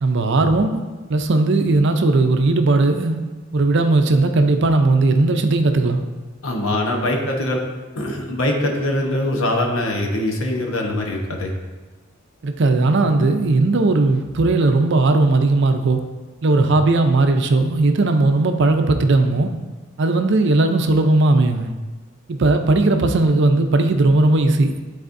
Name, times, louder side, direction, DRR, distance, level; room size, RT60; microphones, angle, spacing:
voice 1, 0.0-0.8 1.1-3.2 3.5-6.0 12.4-16.0 16.4-19.5 20.0-21.7 22.3-24.8, right 2 dB, 60° right, 6 dB, 0.5 m, -17 dB
voice 2, 6.4-7.6 8.0-11.5, left 1 dB, 75° left, 1 dB, 1.0 m, -22 dB
11.0 x 4.1 x 2.6 m, 1.2 s
head